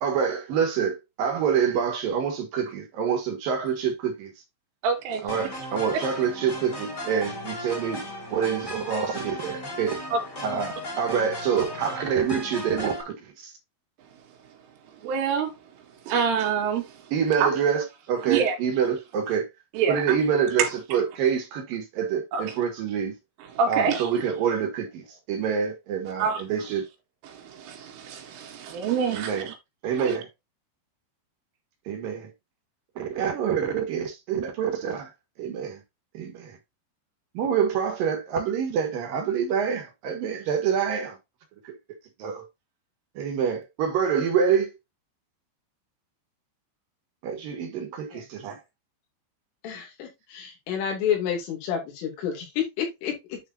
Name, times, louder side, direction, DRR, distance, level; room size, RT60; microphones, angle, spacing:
voice 1, 0.0-4.3 5.2-10.0 10.4-13.5 17.1-19.5 19.9-23.1 23.6-26.9 29.1-29.5 29.8-30.3 31.9-32.3 33.0-35.1 35.4-35.8 36.1-36.6 37.3-41.2 41.6-41.7 42.2-42.4 43.2-44.7 47.2-48.6, right 7 dB, 60° right, 2.6 m, -26 dB
voice 2, 4.8-5.2 5.9-6.0 10.1-10.2 15.0-15.5 16.1-17.0 17.4-17.5 18.3-18.6 19.7-20.0 20.6-20.7 22.3-22.6 23.5-24.1 26.2-26.4 27.2-29.5 29.9-30.2, right 6 dB, 85° right, 4.4 m, -26 dB
sound 1, 5.3-13.0, left 1 dB, 25° left, 2.1 m, -36 dB
voice 3, 49.6-53.4, left 8 dB, 80° left, 5.2 m, -30 dB
11.0 x 4.9 x 2.7 m
omnidirectional pair, 5.6 m